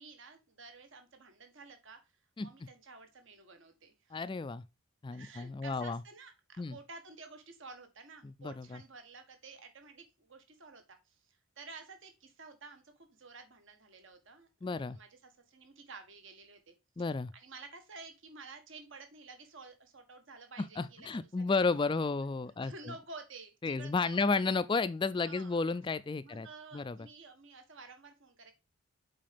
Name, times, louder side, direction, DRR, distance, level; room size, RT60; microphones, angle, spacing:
voice 1, 0.0-2.1 2.4-4.2 5.1-16.7 17.3-21.1 21.4-21.5 22.6-24.2 25.2-25.7 26.2-28.5, right 3 dB, 60° right, 1.4 m, -52 dB
voice 2, 4.1-4.6 5.0-6.0 6.6-6.8 8.2-8.8 14.6-15.0 17.0-17.3 20.6-22.7 23.6-26.5 26.7-27.0, left 4 dB, 20° left, 0.3 m, -32 dB
7.6 x 4.8 x 3.4 m
head